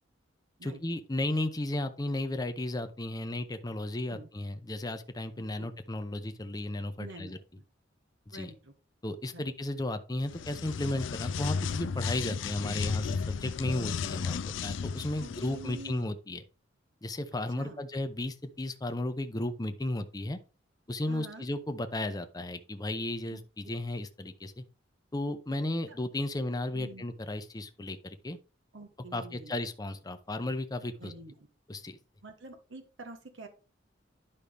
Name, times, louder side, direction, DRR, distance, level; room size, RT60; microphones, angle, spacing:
voice 1, 0.6-7.4 8.3-8.5 9.0-16.4 17.0-20.4 20.9-24.6 25.1-28.4 29.1-31.1 31.7-32.0, left 1 dB, 20° left, 0.7 m, -34 dB
voice 2, 5.4-5.7 7.0-7.3 8.3-8.7 9.3-9.5 15.2-16.2 17.6-17.8 21.1-21.4 23.3-23.4 25.9-26.0 26.7-27.0 28.7-29.5 31.0-31.3 32.2-33.5, right 2 dB, 75° right, 1.2 m, -47 dB
sound 1, 10.2-15.9, left 5 dB, 75° left, 0.4 m, -34 dB
10.5 x 5.5 x 3.4 m
head